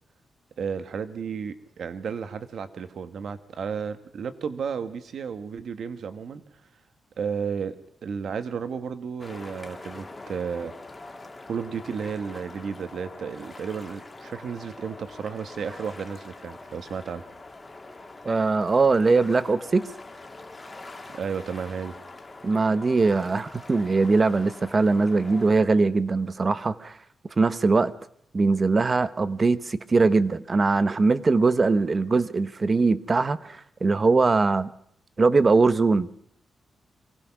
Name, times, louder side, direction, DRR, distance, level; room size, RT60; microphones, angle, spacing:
voice 1, 0.6-6.4 7.2-7.8 8.0-10.7 11.5-17.3 21.1-22.0, right 6 dB, 60° right, 10 dB, 1.4 m, -33 dB
sound 1, 9.2-25.5, left 2 dB, 15° left, 1.8 m, -44 dB
voice 2, 18.2-19.9 22.4-26.9 27.4-27.9 28.3-34.7 35.2-36.1, right 3 dB, 25° right, 15 dB, 0.8 m, -21 dB
24.0 x 18.5 x 6.0 m, 0.72 s
wide cardioid pair, 180°, 0 cm